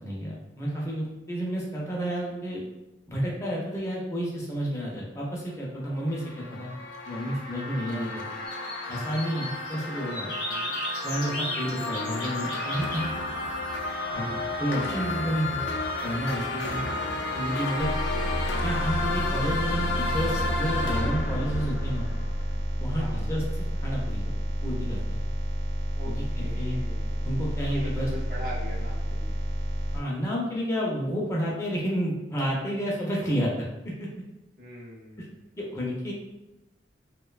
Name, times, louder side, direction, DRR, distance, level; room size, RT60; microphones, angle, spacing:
voice 1, 0.0-2.6 3.1-6.8 7.1-8.2 8.9-10.3 11.0-13.1 14.1-14.3 14.6-15.6 16.0-16.8 17.3-17.9 18.6-22.1 22.8-23.4 23.8-24.3 24.6-25.2 26.1-26.8 27.2-28.1 29.9-33.7 34.0-34.1 35.6-36.1, equal, 15° left, -4 dB, 0.4 m, -30 dB
sound 1, 5.8-22.8, left 2 dB, 80° left, 0.4 m, -32 dB
sound 2, 8.5-9.8 10.1-13.1, left 1 dB, 55° left, 0.8 m, -36 dB
voice 2, 10.4-10.7 16.6-16.9 22.9-23.3 25.9-27.3 27.7-29.4 34.6-35.5, equal, 45° right, -4 dB, 0.6 m, -42 dB
sound 3, 17.8-30.0, equal, 90° right, 0.8 m, -30 dB
2.6 x 2.2 x 2.3 m, 0.99 s
head